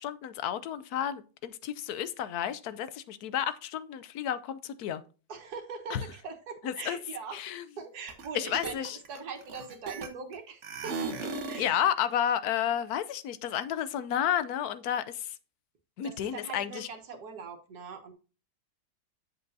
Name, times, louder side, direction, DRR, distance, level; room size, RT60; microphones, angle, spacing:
voice 1, 0.0-5.0 5.9-6.0 6.6-7.0 7.3-7.6 8.3-9.0 11.5-15.4 16.0-16.9, left 10 dB, 80° left, 1.2 m, -31 dB
voice 2, 5.3-7.4 7.8-11.9 16.0-18.1, right 5 dB, 80° right, 1.8 m, -42 dB
sound 1, 8.1-8.3 8.5-10.3 10.6-11.7, right 4 dB, 50° right, 1.3 m, -36 dB
7.9 x 6.9 x 2.7 m
omnidirectional pair, 1.7 m